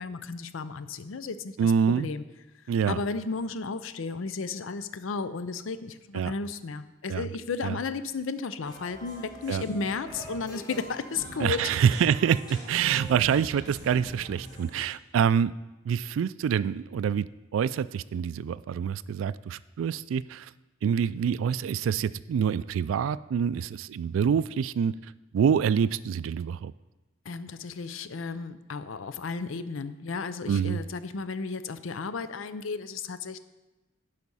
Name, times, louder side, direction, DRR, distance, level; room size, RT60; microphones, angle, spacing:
voice 1, 0.0-2.2 2.9-11.6 27.3-33.4, left 4 dB, 85° left, 13 dB, 0.5 m, -34 dB
voice 2, 1.6-2.1 2.7-3.0 6.1-6.3 7.1-7.3 7.6-7.8 9.5-9.6 11.4-15.5 15.8-17.3 17.5-20.5 20.8-26.7 30.5-30.8, right 7 dB, 85° right, 18 dB, 0.3 m, -26 dB
sound 1, 8.6-14.8, equal, 20° left, 2.9 m, -43 dB
11.0 x 5.0 x 5.4 m, 1.1 s
head